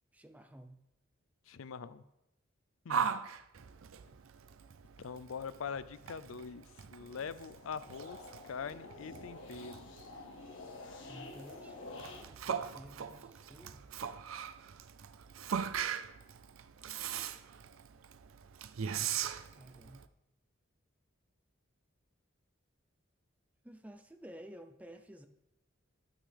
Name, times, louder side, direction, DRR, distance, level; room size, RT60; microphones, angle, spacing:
voice 1, 0.1-0.8 9.0-9.1 11.1-13.8 16.7-17.2 18.9-20.1 23.6-25.3, right 1 dB, 5° right, 6 dB, 0.5 m, -54 dB
voice 2, 1.5-2.0 2.8-3.1 5.0-10.1, left 6 dB, 85° left, 15 dB, 0.5 m, -43 dB
Yell, 2.9-20.0, right 7 dB, 90° right, 0.5 m, -40 dB
sound 1, 7.0-12.2, left 2 dB, 70° left, 1.5 m, -49 dB
11.0 x 9.1 x 3.4 m, 0.88 s
head